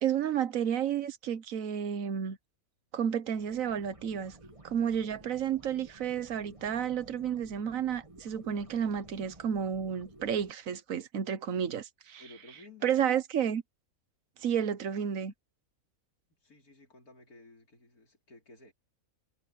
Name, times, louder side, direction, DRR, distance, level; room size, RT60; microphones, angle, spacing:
voice 1, 0.0-2.4 2.9-4.3 4.6-12.2 12.8-13.6 14.4-15.3, right 8 dB, 65° right, 1.3 m, -31 dB
sound 1, 3.3-10.5, right 2 dB, 20° right, 2.2 m, -54 dB
voice 2, 12.2-13.0 16.4-18.7, left 2 dB, 85° left, 4.4 m, -55 dB
omnidirectional pair, 1.5 m